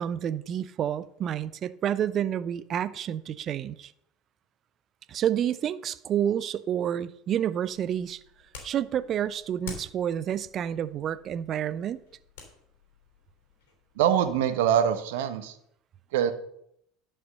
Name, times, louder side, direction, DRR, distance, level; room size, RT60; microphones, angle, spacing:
voice 1, 0.0-3.9 5.1-8.2 8.6-12.0, right 10 dB, 40° right, 0.6 m, -29 dB
sound 1, 7.6-14.4, left 5 dB, 65° left, 3.3 m, -49 dB
voice 2, 13.9-15.6 16.1-16.3, right 9 dB, 65° right, 1.1 m, -24 dB
11.0 x 5.7 x 6.5 m
figure-of-eight pair, 75°, 0 cm